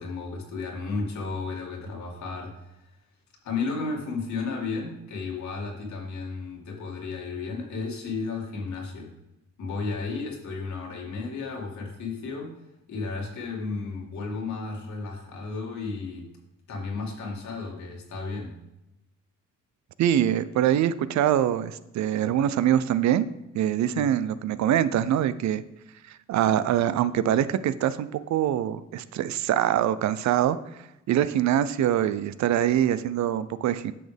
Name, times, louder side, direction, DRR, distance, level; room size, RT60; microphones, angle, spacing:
voice 1, 0.0-2.7 3.4-9.1 9.6-12.6 12.9-16.3 16.7-18.6 23.8-24.1, left 4 dB, 70° left, -1 dB, 2.4 m, -33 dB
voice 2, 20.0-23.3 23.5-25.6 26.3-30.6 31.1-33.9, right 11 dB, 65° right, 15 dB, 0.5 m, -24 dB
10.0 x 6.3 x 3.4 m, 0.93 s
cardioid pair, 90°, 30 cm